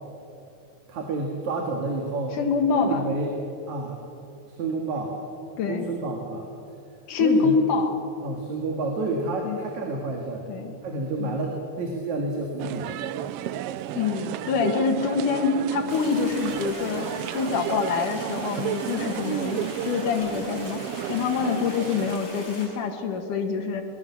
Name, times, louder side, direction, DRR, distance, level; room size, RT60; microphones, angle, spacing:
voice 1, 0.9-2.4 2.7-3.3 3.7-4.0 4.5-5.2 5.7-6.5 7.2-7.5 8.2-10.5 10.8-12.9, right 3 dB, 70° right, 1 dB, 3.3 m, -29 dB
voice 2, 2.3-3.0 5.6-5.9 7.1-7.9 9.4-9.6 10.5-10.8 11.2-11.4 13.9-20.8 21.1-23.8, left 5 dB, 85° left, 3 dB, 3.2 m, -25 dB
sound 1, 12.6-22.2, right 11 dB, 85° right, 1.4 m, -33 dB
sound 2, 15.9-22.7, left 1 dB, 30° left, 5.7 m, -40 dB
22.5 x 21.0 x 7.1 m, 2.6 s
omnidirectional pair, 3.5 m